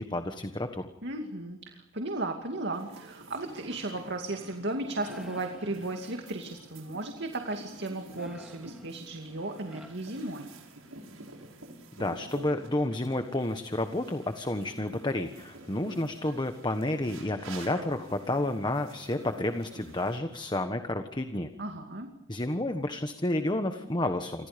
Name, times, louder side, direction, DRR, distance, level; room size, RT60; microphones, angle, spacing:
voice 1, 0.0-0.9 12.0-21.5 22.3-24.5, left 1 dB, 20° left, 7 dB, 1.3 m, -30 dB
voice 2, 1.0-10.5 21.6-22.1, right 2 dB, 55° right, 4 dB, 2.4 m, -35 dB
sound 1, 2.7-20.2, right 2 dB, 90° right, 7.5 m, -49 dB
sound 2, 4.9-6.5 8.2-10.8, right 1 dB, 5° right, 2.8 m, -52 dB
29.0 x 25.5 x 5.2 m, 0.97 s
head